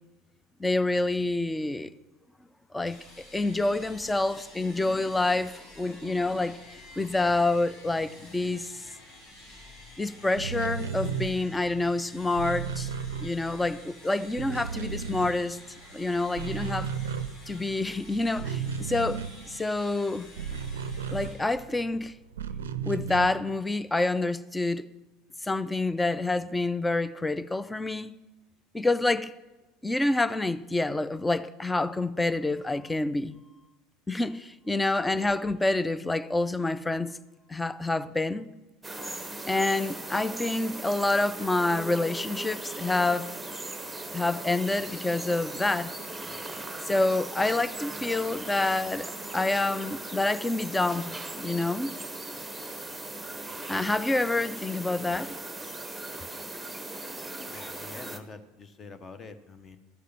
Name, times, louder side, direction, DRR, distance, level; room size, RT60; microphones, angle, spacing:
voice 1, 0.6-1.9 2.7-3.0 3.3-8.8 10.0-12.9 13.2-15.6 15.9-16.9 17.5-20.3 21.1-22.1 22.9-24.8 25.4-28.1 28.7-29.3 29.8-33.4 34.1-37.2 37.5-38.5 39.4-43.3 44.1-45.9 46.8-51.9 53.7-55.4, left 2 dB, 10° left, 0.5 m, -27 dB
sound 1, 2.8-22.3, left 1 dB, 55° left, 4.2 m, -50 dB
sound 2, 10.3-13.9 14.2-15.9 16.2-21.8 22.3-23.6, right 6 dB, 70° right, 0.4 m, -35 dB
sound 3, 38.8-58.2, right 2 dB, 5° right, 1.0 m, -38 dB
voice 2, 57.5-59.8, left 4 dB, 30° left, 1.0 m, -46 dB
13.5 x 6.6 x 7.5 m
figure-of-eight pair, 75°, 0 cm